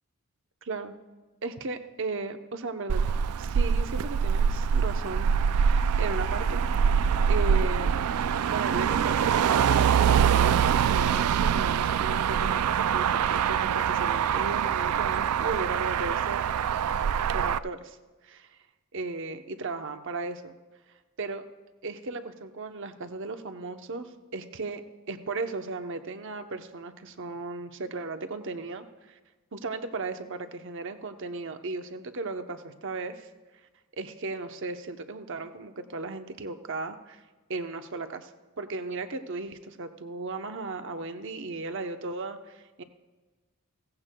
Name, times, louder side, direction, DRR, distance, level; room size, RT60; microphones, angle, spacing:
voice 1, 0.6-1.0 1.4-3.0 3.4-6.6 6.9-8.0 8.5-16.4 17.3-18.0 18.2-18.6 18.9-20.6 21.2-21.4 21.8-24.8 25.1-29.2 29.5-33.3 33.9-37.2 37.5-38.3 38.6-42.8, right 3 dB, 60° right, 7 dB, 0.8 m, -36 dB
Motor vehicle (road), 2.9-17.6, right 7 dB, 90° right, 0.4 m, -24 dB
17.0 x 15.5 x 2.3 m, 1.3 s
head